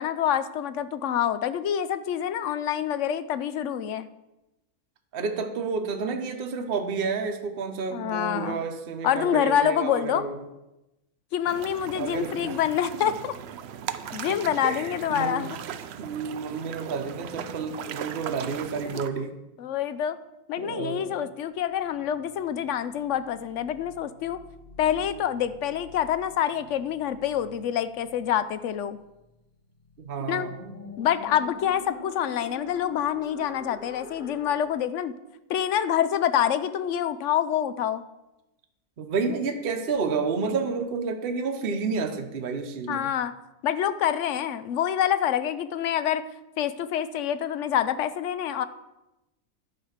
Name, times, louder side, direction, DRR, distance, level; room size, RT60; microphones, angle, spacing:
voice 1, 0.0-4.1 7.9-8.6 9.0-10.2 11.3-13.3 14.1-15.6 18.9-19.0 19.6-20.2 20.5-24.4 24.8-29.0 30.2-30.5 31.0-35.1 35.5-38.0 42.9-43.3 43.6-46.2 46.6-48.6, left 10 dB, 65° left, 13 dB, 0.8 m, -26 dB
voice 2, 5.1-10.4 11.9-12.6 14.6-15.5 16.0-19.4 20.6-21.1 30.0-30.6 39.0-43.1, right 5 dB, 45° right, 4 dB, 1.0 m, -30 dB
sound 1, 11.4-19.1, right 9 dB, 65° right, 0.6 m, -38 dB
sound 2, 21.6-34.8, left 3 dB, 35° left, 1.0 m, -47 dB
11.5 x 5.0 x 6.5 m, 0.95 s
omnidirectional pair, 1.5 m